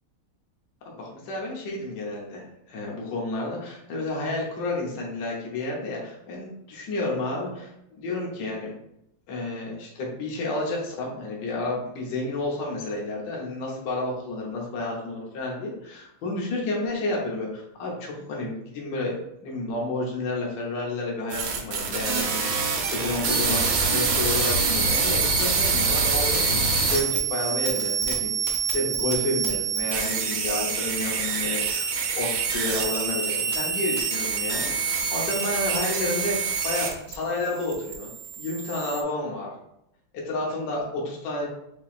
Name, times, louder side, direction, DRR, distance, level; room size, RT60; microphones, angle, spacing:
voice 1, 0.8-8.7 9.3-19.2 19.4-31.9 32.1-39.5 40.1-41.5, left 2 dB, 60° left, -3 dB, 1.6 m, -31 dB
sound 1, 21.3-37.1 37.4-39.0, right 5 dB, 75° right, 1.6 m, -26 dB
7.0 x 2.9 x 2.4 m, 0.80 s
omnidirectional pair, 2.3 m